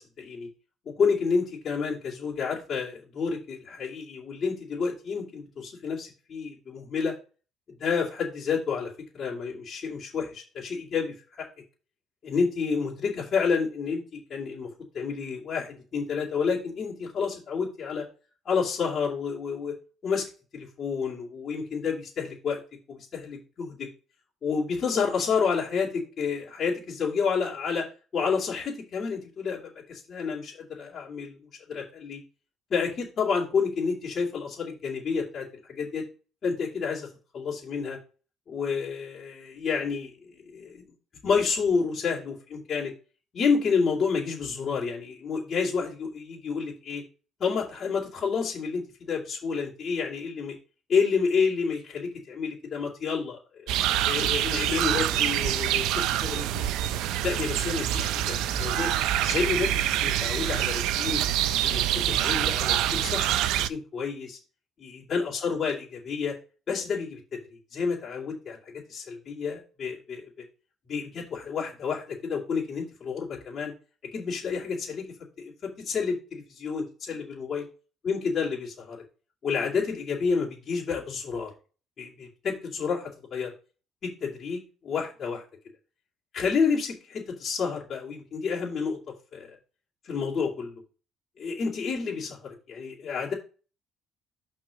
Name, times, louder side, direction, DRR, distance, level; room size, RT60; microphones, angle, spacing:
voice 1, 0.2-0.5 0.8-7.1 7.8-11.5 12.2-18.0 18.4-19.7 20.0-20.3 20.5-22.6 22.9-23.9 24.4-27.9 28.1-29.6 29.9-32.2 32.7-36.0 36.4-37.1 37.3-38.0 38.5-40.8 41.2-42.9 43.3-47.0 47.4-50.6 50.9-53.7 54.0-56.7 57.2-58.9 59.2-61.2 61.6-63.3 63.7-64.4 64.8-66.3 66.7-67.2 67.5-70.2 70.9-73.7 74.1-75.0 75.4-77.7 78.0-79.0 79.4-81.5 82.0-83.5 84.0-85.4 86.3-89.0 89.3-89.6 90.0-90.8 91.4-93.3, left 5 dB, 40° left, -4 dB, 3.0 m, -29 dB
sound 1, 53.7-63.7, right 12 dB, 85° right, 0.6 m, -26 dB
6.1 x 4.4 x 6.4 m, 0.34 s
cardioid pair, 115°, 0 cm